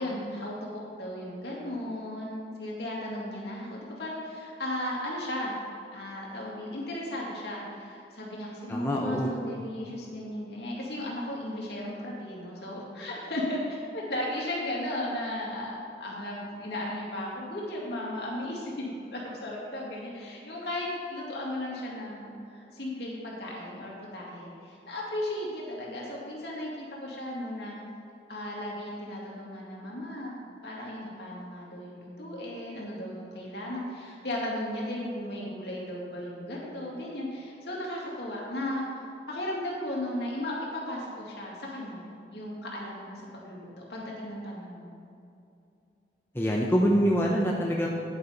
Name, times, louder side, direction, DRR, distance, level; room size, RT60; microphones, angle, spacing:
voice 1, 0.0-5.6 5.9-27.8 28.3-30.3 30.6-42.0 42.3-44.9, left 1 dB, 65° left, -4 dB, 2.4 m, -35 dB
voice 2, 8.7-9.3 46.3-47.9, equal, 15° left, -2 dB, 0.7 m, -25 dB
9.9 x 9.5 x 4.0 m, 2.6 s
head